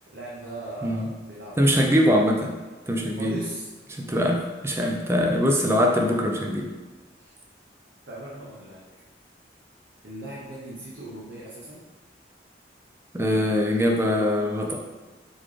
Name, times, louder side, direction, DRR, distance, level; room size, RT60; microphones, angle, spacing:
voice 1, 0.1-1.6 3.1-3.7 7.2-7.3 8.1-8.8 10.0-11.8, right 1 dB, 85° right, -6 dB, 0.8 m, -39 dB
voice 2, 1.6-2.5 2.9-3.4 3.9-6.7 13.1-14.8, equal, 15° right, 0 dB, 0.4 m, -22 dB
3.9 x 3.6 x 3.2 m, 1.2 s
head